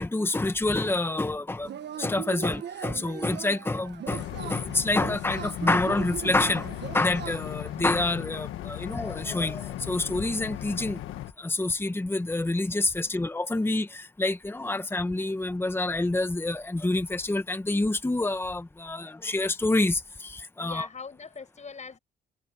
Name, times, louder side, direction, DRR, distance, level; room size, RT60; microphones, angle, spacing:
voice 1, 0.0-1.7 2.0-6.7 6.9-11.0 11.4-20.9, left 2 dB, 10° left, 1.4 m, -27 dB
Yell / Cheering, 1.6-7.8, right 9 dB, 60° right, 1.5 m, -39 dB
sound 1, 4.1-11.3, left 14 dB, 90° left, 1.6 m, -37 dB
voice 2, 20.6-22.0, left 5 dB, 35° left, 7.1 m, -43 dB
cardioid pair, 90°, 20 cm